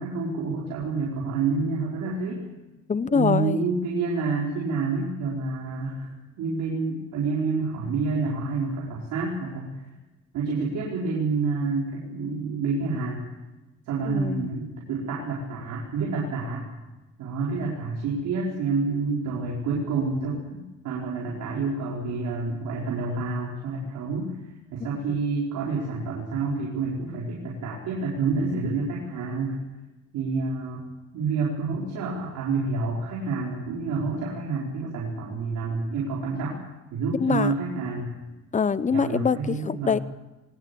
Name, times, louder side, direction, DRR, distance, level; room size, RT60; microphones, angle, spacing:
voice 1, 0.0-2.4 3.1-6.1 6.4-9.7 10.3-13.2 13.9-16.6 17.2-24.4 24.7-29.6 30.1-30.8 31.1-36.6 36.9-38.1 38.9-40.0, right 4 dB, 90° right, -5 dB, 5.1 m, -28 dB
voice 2, 2.9-3.6 14.1-14.5 37.2-37.5 38.5-40.0, left 5 dB, 25° left, 16 dB, 0.8 m, -24 dB
22.0 x 19.5 x 8.6 m, 1.1 s
cardioid pair, 90°, 30 cm